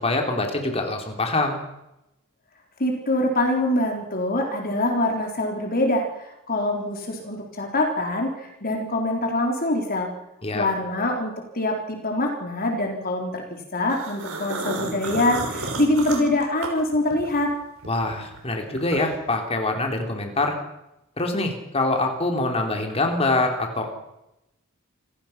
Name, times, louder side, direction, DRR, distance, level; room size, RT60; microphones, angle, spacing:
voice 1, 0.0-1.6 10.4-10.7 17.9-20.6 21.2-23.9, left 2 dB, 30° left, 3 dB, 3.3 m, -24 dB
voice 2, 2.8-10.1 10.5-17.5, left 1 dB, 45° left, 2 dB, 3.8 m, -24 dB
sound 1, 13.9-17.5 17.8-19.3, right 3 dB, 70° right, 5.9 m, -32 dB
28.5 x 17.5 x 5.9 m, 0.91 s
head